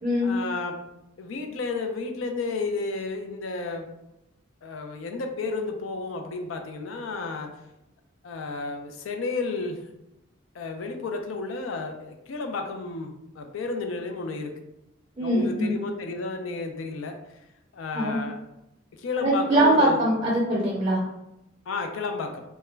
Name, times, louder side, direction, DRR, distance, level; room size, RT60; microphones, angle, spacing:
voice 1, 0.2-0.8 1.2-3.9 4.6-7.5 8.2-9.8 10.5-14.5 15.2-17.2 17.7-18.4 19.0-20.0 21.7-22.4, left 3 dB, 85° left, 4 dB, 0.4 m, -32 dB
voice 2, 15.2-15.7 17.9-18.2 19.2-21.1, right 1 dB, 25° right, -5 dB, 0.5 m, -22 dB
2.3 x 2.1 x 3.1 m, 0.88 s
head